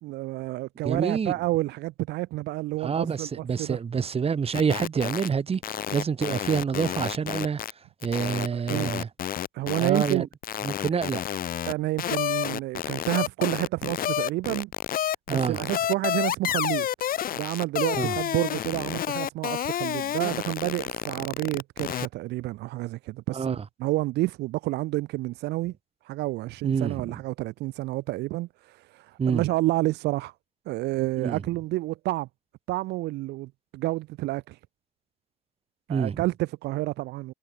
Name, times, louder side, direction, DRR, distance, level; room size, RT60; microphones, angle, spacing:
voice 1, 0.0-3.8 8.5-8.9 9.5-10.3 10.9-11.0 11.6-14.7 15.3-16.9 17.3-25.7 26.0-30.3 30.7-32.3 32.7-34.6 35.9-37.3, right 18 dB, 85° right, 1.5 m, -29 dB
voice 2, 0.8-1.3 2.8-5.6 5.9-7.6 8.0-9.1 9.8-10.2 10.6-11.2 15.3-15.6 18.0-18.1 23.3-23.6 26.6-27.1 29.2-29.5 31.2-31.4 35.9-36.2, right 6 dB, 35° right, 6.8 m, -27 dB
sound 1, 4.5-5.3 5.5-7.7 8.0-11.7 12.0-22.1, left 11 dB, 60° left, 5.1 m, -30 dB
cardioid pair, 110°, 17 cm